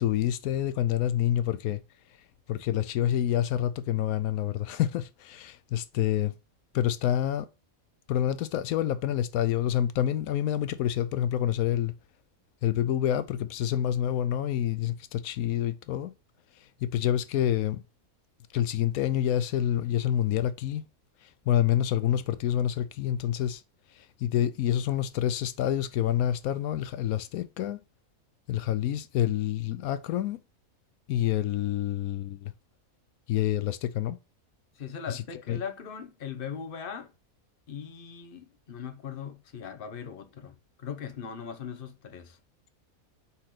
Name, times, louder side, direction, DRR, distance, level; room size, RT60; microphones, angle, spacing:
voice 1, 0.0-1.8 2.5-6.3 6.7-7.5 8.1-11.9 12.6-16.1 16.6-17.8 18.5-20.9 21.2-23.6 23.9-27.8 28.5-30.4 31.1-32.5 33.3-34.2 35.1-35.2 35.5-35.6, left 11 dB, 85° left, 1.0 m, -27 dB
voice 2, 34.7-37.1 37.7-42.4, left 7 dB, 45° left, 1.0 m, -39 dB
5.0 x 4.2 x 5.8 m
omnidirectional pair, 1.5 m